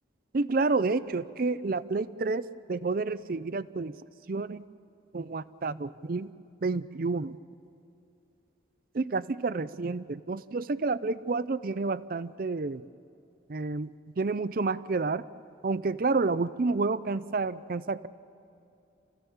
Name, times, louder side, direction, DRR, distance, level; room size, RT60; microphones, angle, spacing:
voice 1, 0.3-3.9 4.3-4.6 5.1-6.3 6.6-7.4 8.9-12.8 13.5-13.9 14.2-15.2 15.6-18.1, right 3 dB, 50° right, 16 dB, 0.5 m, -29 dB
29.5 x 16.0 x 7.1 m, 2.6 s
head